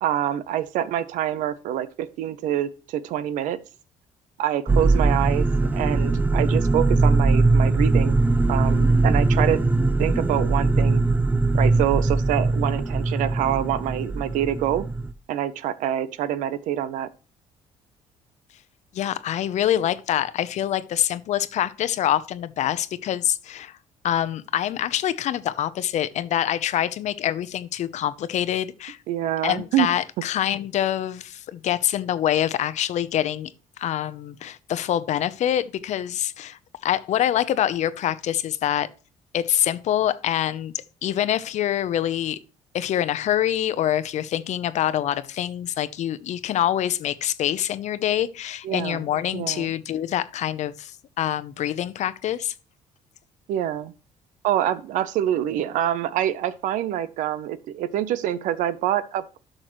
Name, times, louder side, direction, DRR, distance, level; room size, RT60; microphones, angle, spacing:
voice 1, 0.0-3.6 4.4-8.2 8.5-9.6 10.0-11.0 11.5-14.9 15.3-17.1 29.1-29.9 48.6-49.0 49.3-49.7 53.5-53.9 54.4-59.4, right 11 dB, 80° right, 0.7 m, -26 dB
sound 1, 4.7-15.1, right 3 dB, 15° right, 0.7 m, -21 dB
voice 2, 18.9-23.8 24.0-29.0 29.4-33.5 33.8-38.9 39.3-40.7 41.0-42.4 42.7-52.5, left 11 dB, 65° left, 0.8 m, -25 dB
12.0 x 6.4 x 3.1 m
cardioid pair, 95°, 13 cm